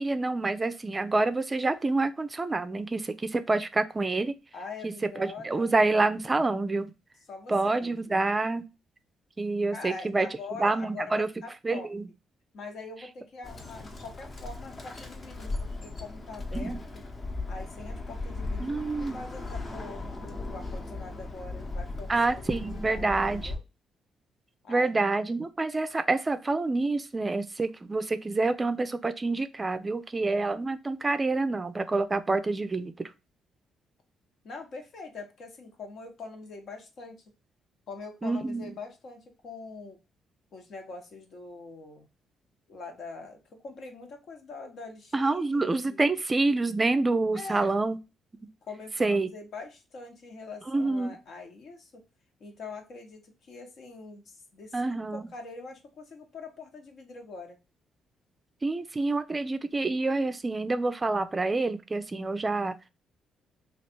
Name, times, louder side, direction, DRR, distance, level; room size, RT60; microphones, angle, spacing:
voice 1, 0.0-4.3 4.8-4.9 5.2-6.9 7.5-8.6 9.4-10.3 10.6-11.3 11.6-12.0 16.5-16.8 18.6-19.2 22.1-23.5 24.7-33.1 38.2-38.7 45.1-48.0 49.0-49.3 50.7-51.2 54.7-55.3 58.6-62.8, right 3 dB, 25° right, 10 dB, 0.4 m, -27 dB
voice 2, 4.5-5.7 7.3-8.2 9.7-11.9 12.5-17.0 17.5-22.5 22.8-23.6 24.6-25.1 34.4-37.1 37.9-40.0 40.5-42.1 42.7-46.1 47.3-47.8 48.6-52.0 52.4-57.6, left 3 dB, 65° left, 4 dB, 1.1 m, -43 dB
Bird, 13.4-23.6, left 2 dB, 35° left, 0.9 m, -37 dB
3.2 x 2.4 x 4.3 m, 0.27 s
cardioid pair, 90°, 0 cm